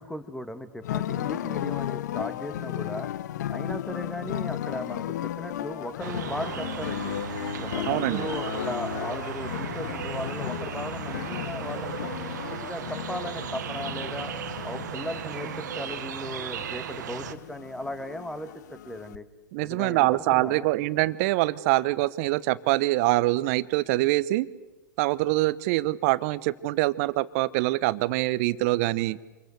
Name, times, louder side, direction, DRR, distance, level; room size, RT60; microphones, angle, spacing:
voice 1, 0.0-3.1 3.5-7.2 7.6-12.1 12.5-14.3 14.6-19.3 19.6-20.7, left 1 dB, 5° left, 11 dB, 2.0 m, -37 dB
sound 1, 0.8-19.2, left 12 dB, 65° left, 0.8 m, -35 dB
sound 2, 6.0-17.3, right 8 dB, 65° right, 1.7 m, -36 dB
voice 2, 7.9-8.3 19.5-24.5 25.0-29.2, right 19 dB, 50° right, 17 dB, 1.0 m, -24 dB
27.5 x 22.0 x 8.1 m, 1.1 s
figure-of-eight pair, 100°, 10 cm